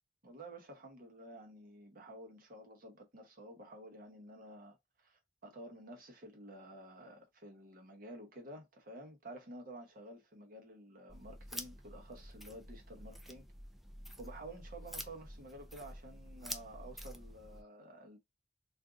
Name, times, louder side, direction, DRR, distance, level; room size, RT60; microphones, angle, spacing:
voice 1, 0.2-13.5 14.2-18.2, right 1 dB, 50° right, 0.9 m, -51 dB
sound 1, 11.1-17.6, equal, ahead, 0.3 m, -48 dB
2.5 x 2.4 x 3.7 m
head